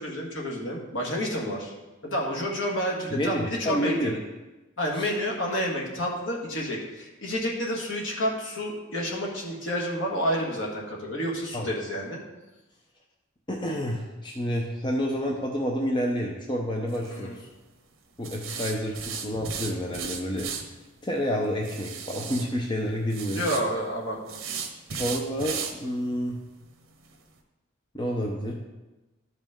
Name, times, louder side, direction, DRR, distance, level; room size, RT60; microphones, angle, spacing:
voice 1, 0.0-1.7 2.0-4.2 4.8-12.2 17.1-17.4 18.5-18.7 23.3-24.4, equal, 60° left, -2 dB, 1.7 m, -30 dB
voice 2, 3.1-4.2 4.9-5.1 11.5-11.7 13.5-17.5 18.2-20.5 21.0-23.4 25.0-26.4 27.9-28.5, equal, 20° left, -1 dB, 0.7 m, -29 dB
sound 1, 16.9-17.2 18.2-20.6 21.6-22.4 23.1-23.6 24.3-25.7 26.1-26.2 26.6-26.7 27.1-27.2, right 6 dB, 70° right, 1.1 m, -35 dB
12.5 x 5.3 x 3.7 m, 1.1 s
head